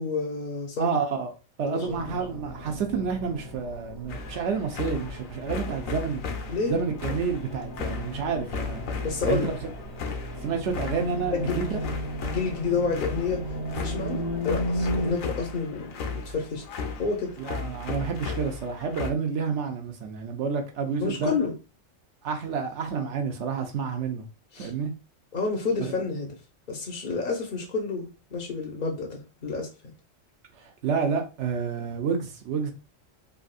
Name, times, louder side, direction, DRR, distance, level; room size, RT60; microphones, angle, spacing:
voice 1, 0.0-1.0 1.6-2.1 6.5-6.8 9.0-9.5 11.3-11.6 12.2-13.4 13.7-16.0 16.3-16.6 17.0-17.3 21.0-21.5 24.5-24.7 25.3-26.4 26.7-29.9, left 4 dB, 50° left, 0.7 m, -29 dB
voice 2, 0.8-1.3 1.6-6.2 6.6-8.8 9.2-9.7 10.4-11.8 17.4-21.4 22.2-24.2 24.6-24.9 25.8-25.9 30.5-32.7, right 5 dB, 65° right, 0.9 m, -29 dB
sound 1, 1.8-15.1, equal, 45° right, 0.3 m, -35 dB
sound 2, 4.1-19.1, left 4 dB, 90° left, 1.1 m, -36 dB
3.4 x 2.6 x 2.3 m
omnidirectional pair, 1.3 m